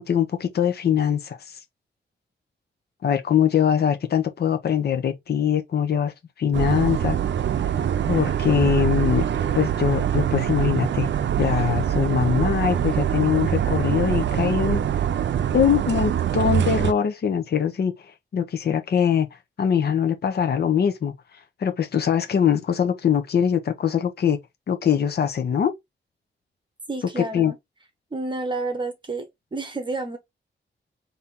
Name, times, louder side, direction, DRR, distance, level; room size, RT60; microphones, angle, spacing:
voice 1, 0.0-1.6 3.0-7.2 8.1-9.3 9.5-11.1 11.4-14.8 15.5-24.4 24.7-25.7 27.2-27.5, left 8 dB, 55° left, 0.7 m, -22 dB
sound 1, 6.5-16.9, right 9 dB, 70° right, 0.5 m, -24 dB
voice 2, 26.9-27.5 28.1-30.2, right 3 dB, 25° right, 0.9 m, -30 dB
4.2 x 2.7 x 3.6 m
wide cardioid pair, 175°, 19 cm